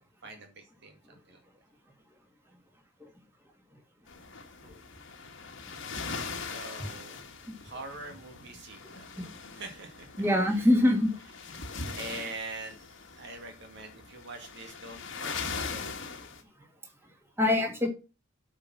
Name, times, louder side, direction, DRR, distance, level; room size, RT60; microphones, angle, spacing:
voice 1, 0.2-1.0 1.3-1.4 6.5-7.2 7.6-9.1 9.5-10.7 11.2-11.6 11.9-16.0, right 2 dB, 60° right, 4 dB, 2.1 m, -44 dB
sound 1, 4.1-16.4, left 4 dB, 65° left, 1.7 m, -41 dB
voice 2, 10.2-11.1 17.4-17.9, left 1 dB, 10° right, 2 dB, 2.0 m, -24 dB
8.6 x 5.0 x 6.0 m, 0.30 s
head